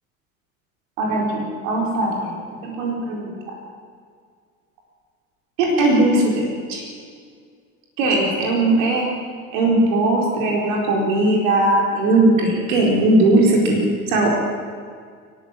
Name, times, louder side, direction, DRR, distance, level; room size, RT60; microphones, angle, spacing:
voice 1, 1.0-2.4 2.6-3.3 5.6-6.4 6.7-6.8 8.0-9.1 9.5-13.8 14.1-14.3, right 2 dB, 60° right, -1 dB, 4.5 m, -18 dB
28.0 x 13.0 x 7.5 m, 2.1 s
figure-of-eight pair, 70°, 43 cm